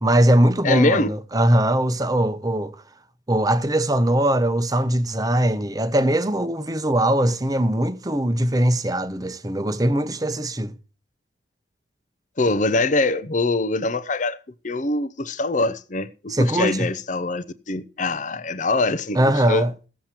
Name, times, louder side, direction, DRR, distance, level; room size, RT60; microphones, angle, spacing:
voice 1, 0.0-2.8 3.3-10.7 16.3-16.9 19.1-19.7, right 1 dB, 20° right, 0.8 m, -21 dB
voice 2, 0.6-1.1 12.4-14.4 14.6-19.2 19.5-19.6, left 2 dB, 40° left, 0.7 m, -23 dB
16.0 x 7.4 x 4.4 m
head